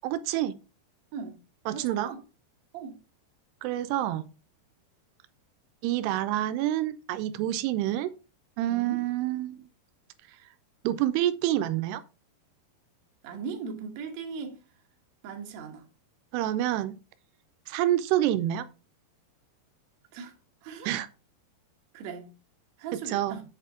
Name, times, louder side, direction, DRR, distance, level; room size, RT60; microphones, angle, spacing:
voice 1, 0.0-0.6 1.7-2.1 3.6-4.3 5.8-8.1 8.6-9.6 10.8-12.0 16.3-17.0 17.7-18.7 20.8-21.1 23.1-23.4, right 13 dB, 85° right, 2.6 m, -27 dB
voice 2, 1.7-2.2 2.7-2.9 8.7-9.0 13.2-14.6 15.2-15.9 20.1-20.3 20.6-20.9 21.9-22.3 22.8-23.4, right 5 dB, 65° right, 1.8 m, -38 dB
7.5 x 6.6 x 3.7 m
omnidirectional pair, 4.8 m